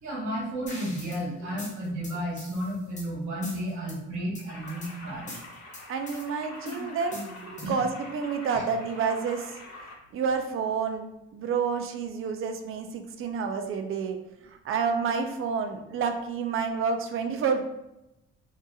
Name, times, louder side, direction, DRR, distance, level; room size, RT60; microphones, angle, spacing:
voice 1, 0.0-5.3 7.6-7.8 8.5-8.6, equal, 70° right, -5 dB, 1.3 m, -32 dB
sound 1, 0.7-1.2 1.6-3.1 3.4-4.0 4.3-4.9 5.3-6.2 6.7-7.9, left 2 dB, 25° left, 0.8 m, -42 dB
sound 2, 4.5-9.9, left 2 dB, 60° left, 1.0 m, -45 dB
voice 2, 5.9-9.5 10.1-14.2 14.4-17.6, right 5 dB, 45° right, 6 dB, 0.4 m, -29 dB
2.8 x 2.7 x 2.3 m, 0.90 s
cardioid pair, 90°, 30 cm